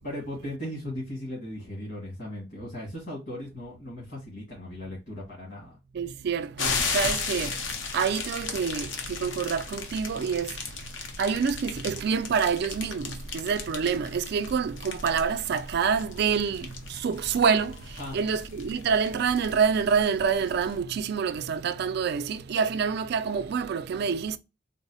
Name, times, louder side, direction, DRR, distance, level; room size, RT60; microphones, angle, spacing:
voice 1, 0.0-5.8 18.0-18.2, left 1 dB, 65° left, 1.6 m, -37 dB
voice 2, 5.9-7.6 7.9-10.5 11.2-17.8 18.1-24.4, right 6 dB, 60° right, 0.3 m, -27 dB
sound 1, 6.6-20.8, left 4 dB, 90° left, 0.7 m, -36 dB
3.8 x 2.0 x 2.6 m
head